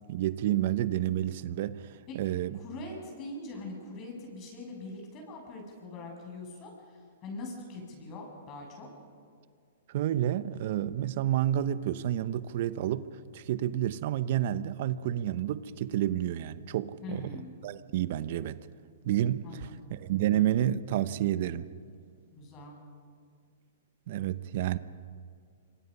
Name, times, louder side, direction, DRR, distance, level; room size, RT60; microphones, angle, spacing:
voice 1, 0.1-2.6 9.9-13.1 13.3-18.6 19.0-21.7 24.1-24.8, right 12 dB, 55° right, 0.9 m, -30 dB
voice 2, 2.5-8.9 17.0-17.5 19.4-19.9 22.3-22.8, left 2 dB, 35° left, 7.6 m, -42 dB
26.0 x 25.5 x 5.6 m
hypercardioid pair, 130°, 0 cm